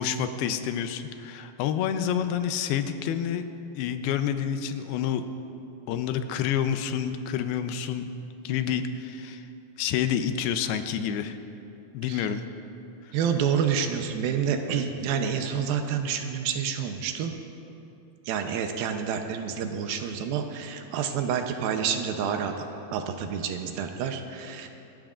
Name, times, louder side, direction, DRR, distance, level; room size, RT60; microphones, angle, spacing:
voice 1, 0.0-3.4 3.8-5.3 5.9-8.1 8.4-9.5 9.8-11.4 11.9-12.4, left 8 dB, 90° left, 9 dB, 2.6 m, -28 dB
voice 2, 13.1-17.3 18.3-24.7, right 7 dB, 80° right, 5 dB, 2.5 m, -28 dB
27.5 x 13.0 x 2.5 m, 2.9 s
omnidirectional pair, 4.4 m